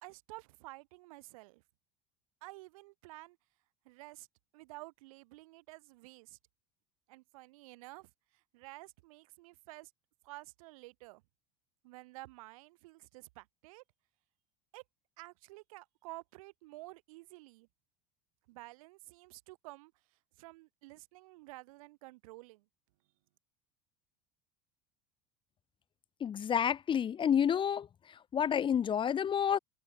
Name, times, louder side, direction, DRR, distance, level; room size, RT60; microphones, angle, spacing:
voice 1, 0.0-1.6 2.4-3.4 3.8-4.3 4.5-6.4 7.1-8.1 8.5-9.9 10.2-11.2 11.8-13.8 14.7-14.8 15.2-17.7 18.5-19.9 20.4-22.6, right 21 dB, 85° right, 4.3 m, -51 dB
voice 2, 26.2-27.9 28.3-29.6, left 8 dB, 30° left, 0.7 m, -29 dB
supercardioid pair, 115°, 17 cm